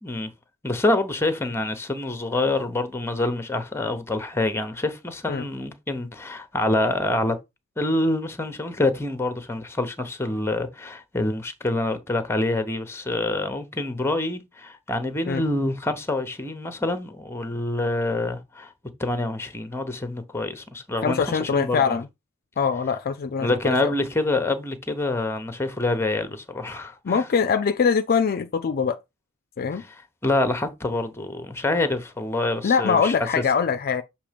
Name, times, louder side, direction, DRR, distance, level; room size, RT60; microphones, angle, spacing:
voice 1, 0.0-0.3 0.6-7.4 7.8-18.7 19.0-22.0 23.4-27.2 29.7-33.1, left 2 dB, 10° left, 0.9 m, -26 dB
voice 2, 21.0-22.1 22.6-23.5 23.8-23.9 27.0-29.0 29.6-29.8 32.6-34.0, left 6 dB, 45° left, 0.4 m, -23 dB
6.8 x 3.0 x 5.1 m
head